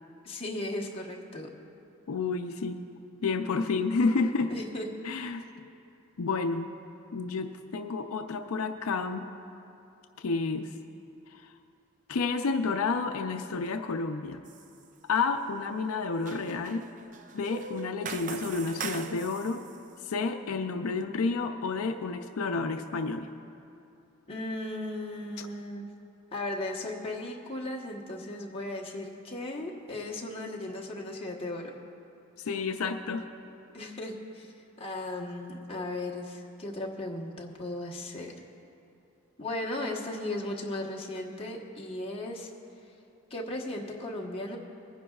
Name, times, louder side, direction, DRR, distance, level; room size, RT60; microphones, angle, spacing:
voice 1, 0.2-1.5 4.5-4.9 24.3-25.9 26.3-31.7 33.7-34.5 34.8-38.3 39.4-42.5 43.3-44.6, left 1 dB, 25° left, -1 dB, 1.1 m, -36 dB
voice 2, 2.1-2.8 3.2-4.5 5.0-5.7 6.2-6.7 7.1-9.3 10.2-10.7 11.3-11.5 12.1-14.4 15.1-16.9 17.3-19.6 20.0-23.3 25.4-25.5 32.4-33.3, left 4 dB, 80° left, 7 dB, 0.5 m, -30 dB
sound 1, 14.5-14.8 15.2-19.8, right 5 dB, 35° right, 0.4 m, -41 dB
24.0 x 10.0 x 2.4 m, 2.7 s
head